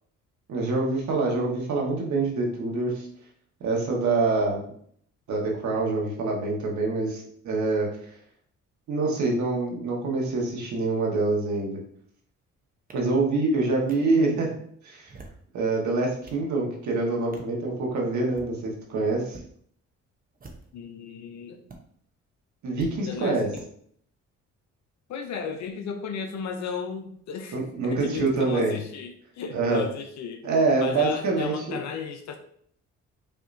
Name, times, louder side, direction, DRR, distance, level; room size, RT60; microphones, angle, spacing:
voice 1, 0.5-3.1 3.6-4.6 5.3-8.2 8.9-11.8 12.9-14.5 14.8-15.1 15.5-19.4 22.6-23.5 27.5-28.8 29.5-29.8 30.4-31.8, right 3 dB, 70° right, -1 dB, 1.4 m, -25 dB
sound 1, 12.9-13.0 13.9-14.0 15.0-15.5 16.0-16.5 17.3-17.5 18.2-18.5 19.3-19.5 20.3-20.8 21.7-21.8 22.8-22.9 23.5-23.7, right 2 dB, 30° right, 0.9 m, -46 dB
voice 2, 20.7-21.6 23.0-23.6 25.1-30.4 30.8-32.4, left 6 dB, 65° left, 5 dB, 0.6 m, -35 dB
5.7 x 2.8 x 2.6 m, 0.63 s
cardioid pair, 90°, 30 cm